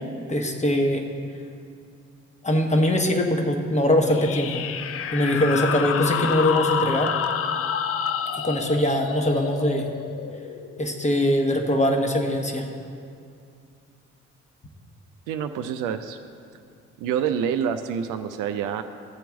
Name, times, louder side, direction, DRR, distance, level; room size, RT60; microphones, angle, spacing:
voice 1, 0.3-1.0 2.4-4.7 5.1-7.1 8.4-9.9 10.8-12.7, left 1 dB, 20° left, 3 dB, 1.1 m, -22 dB
sound 1, 4.1-11.3, left 8 dB, 40° left, 0.5 m, -29 dB
voice 2, 15.3-16.2 17.0-18.8, right 8 dB, 55° right, 8 dB, 0.5 m, -27 dB
12.0 x 4.5 x 7.2 m, 2.3 s
figure-of-eight pair, 45°, 37 cm